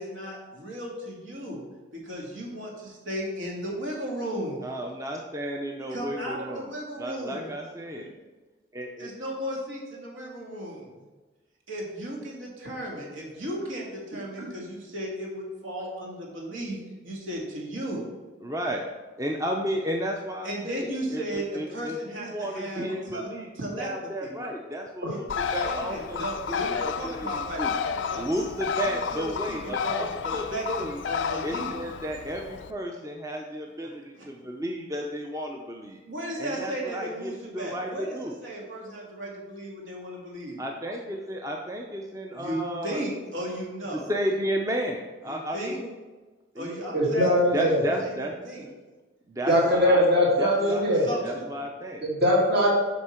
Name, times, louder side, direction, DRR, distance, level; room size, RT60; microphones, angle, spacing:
voice 1, 0.0-1.6 1.9-4.7 5.9-7.5 9.0-10.9 11.7-16.8 17.0-18.0 20.4-23.3 23.5-24.4 25.1-25.2 25.6-28.5 28.8-31.7 33.8-34.3 36.1-40.6 42.3-44.1 45.3-45.8 46.6-48.7 49.5-49.6 50.8-51.5, right 1 dB, 80° right, -2 dB, 1.9 m, -35 dB
voice 2, 4.6-6.7 7.0-8.1 8.7-9.1 18.4-18.8 19.2-25.3 25.5-27.7 28.2-31.0 31.4-36.0 36.4-38.3 40.6-43.0 44.1-45.9 46.5-46.7 47.5-48.3 49.3-50.0 50.4-52.0, equal, 15° right, 2 dB, 0.5 m, -33 dB
Bird, 25.3-32.7, left 6 dB, 75° left, 0.4 m, -31 dB
voice 3, 46.9-47.8 49.5-51.0 52.0-52.7, equal, 55° right, -3 dB, 2.1 m, -21 dB
8.3 x 5.1 x 4.3 m, 1.2 s
head